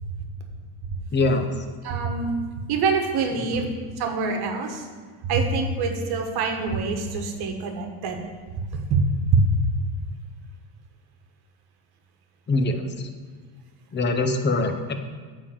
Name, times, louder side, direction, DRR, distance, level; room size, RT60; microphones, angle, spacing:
voice 1, 1.1-1.5 3.3-3.6 12.5-13.1 13.9-14.9, left 2 dB, 20° left, 6 dB, 0.8 m, -24 dB
voice 2, 1.8-2.4 2.7-3.7 4.0-4.8 5.2-8.3 8.9-9.0 9.3-9.4, right 4 dB, 50° right, 4 dB, 1.4 m, -24 dB
9.6 x 3.8 x 7.1 m, 1.5 s
supercardioid pair, 110°, 50 cm